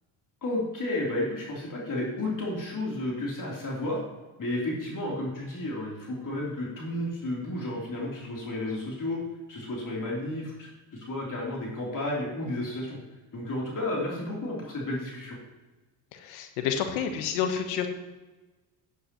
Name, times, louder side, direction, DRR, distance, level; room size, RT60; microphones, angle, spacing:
voice 1, 0.4-4.0 4.4-9.2 9.5-13.0 13.3-15.4, left 1 dB, 40° left, -3 dB, 3.3 m, -32 dB
voice 2, 16.1-17.9, left 8 dB, 85° left, 6 dB, 1.2 m, -29 dB
9.7 x 9.4 x 3.0 m, 1.2 s
supercardioid pair, 80°, 50 cm